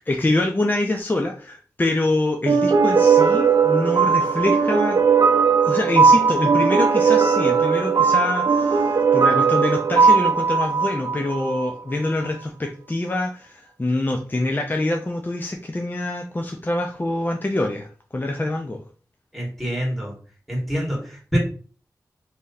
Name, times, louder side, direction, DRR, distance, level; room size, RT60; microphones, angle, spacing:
voice 1, 0.1-5.0 5.6-18.8, left 2 dB, 25° left, 0.6 m, -25 dB
sound 1, 2.5-11.7, right 5 dB, 65° right, 0.5 m, -18 dB
voice 2, 19.3-20.1 20.5-21.4, equal, ahead, 1.9 m, -25 dB
3.0 x 2.7 x 4.0 m
cardioid pair, 50°, 7 cm